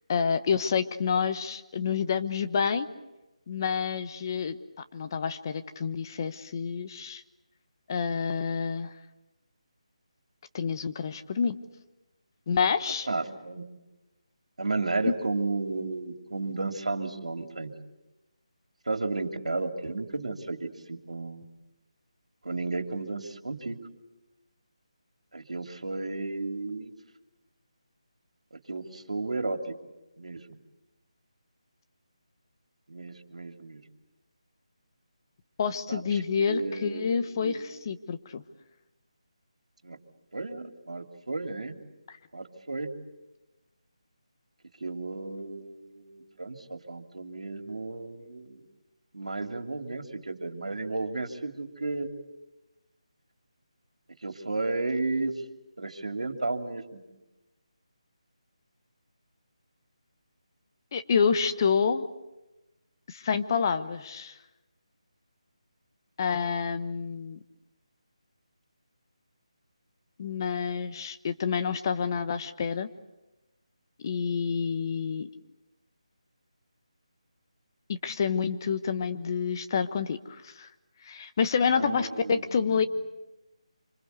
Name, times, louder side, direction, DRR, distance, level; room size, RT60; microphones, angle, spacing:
voice 1, 0.1-2.9 3.5-4.6 4.9-7.2 7.9-8.9 10.5-11.6 12.5-13.1 15.0-15.1 35.6-38.4 42.1-42.2 60.9-62.1 63.1-64.4 66.2-67.4 70.2-72.9 74.0-75.3 77.9-80.7 81.0-82.9, left 6 dB, 35° left, 10 dB, 1.2 m, -28 dB
voice 2, 13.1-13.6 14.6-17.7 18.9-21.5 22.4-23.8 25.3-26.9 28.5-29.6 30.2-30.6 32.9-33.8 35.9-36.0 36.4-37.6 39.8-40.0 40.3-41.8 42.3-42.9 44.8-48.6 49.1-52.2 54.2-55.3 55.8-57.0 81.8-82.8, right 3 dB, 75° right, 6 dB, 2.9 m, -33 dB
26.5 x 26.0 x 8.2 m, 1.0 s
figure-of-eight pair, 160°, 4 cm